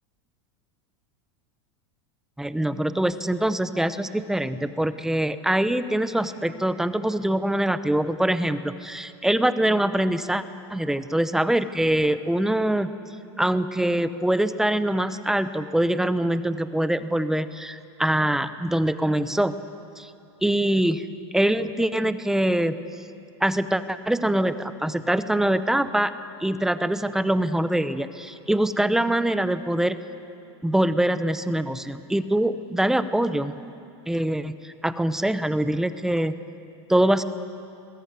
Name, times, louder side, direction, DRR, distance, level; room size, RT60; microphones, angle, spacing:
voice 1, 2.4-10.4 10.7-12.9 13.3-19.5 20.0-20.1 20.4-21.1 21.3-22.8 23.4-26.1 26.4-30.0 30.6-33.6 34.1-36.3 36.9-37.2, right 1 dB, 5° right, 12 dB, 0.7 m, -24 dB
27.5 x 21.0 x 9.4 m, 2.7 s
supercardioid pair, 150°, 14 cm